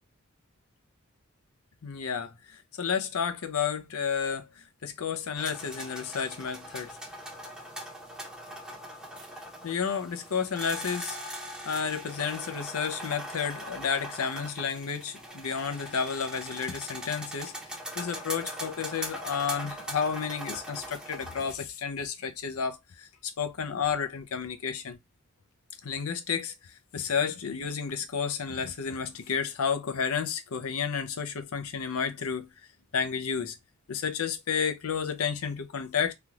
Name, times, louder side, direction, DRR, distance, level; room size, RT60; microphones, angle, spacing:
voice 1, 1.8-7.0 9.6-11.2 11.6-17.5 17.9-25.0 25.8-26.5 26.9-32.5 32.9-33.6 33.9-36.1, left 6 dB, 80° left, 0.6 m, -31 dB
sound 1, 5.4-21.5, equal, 5° right, 0.8 m, -41 dB
3.4 x 2.4 x 2.8 m
head